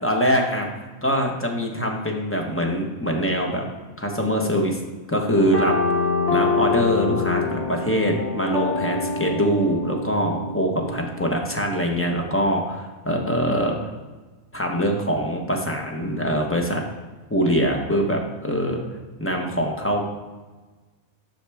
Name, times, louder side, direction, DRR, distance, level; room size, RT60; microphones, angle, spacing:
voice 1, 0.0-0.7 1.0-3.6 4.0-4.8 5.1-13.9 14.5-16.8 17.3-18.8 19.2-20.0, equal, 10° left, 0 dB, 0.7 m, -23 dB
sound 1, 5.4-11.0, left 4 dB, 55° left, 1.2 m, -25 dB
7.9 x 5.8 x 3.4 m, 1.3 s
omnidirectional pair, 1.4 m